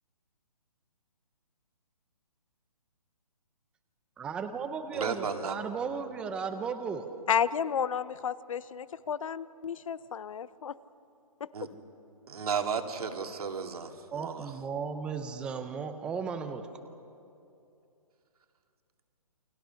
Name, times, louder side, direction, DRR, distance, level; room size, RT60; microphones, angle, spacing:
voice 1, 4.2-7.1 14.1-16.6, right 6 dB, 5° right, 8 dB, 0.6 m, -35 dB
voice 2, 4.9-5.6 11.5-11.7 12.3-14.5, right 6 dB, 70° right, 4 dB, 2.4 m, -34 dB
voice 3, 7.3-10.7, left 8 dB, 55° left, 17 dB, 0.8 m, -31 dB
29.0 x 24.5 x 5.7 m, 2.7 s
hypercardioid pair, 165°, 20 cm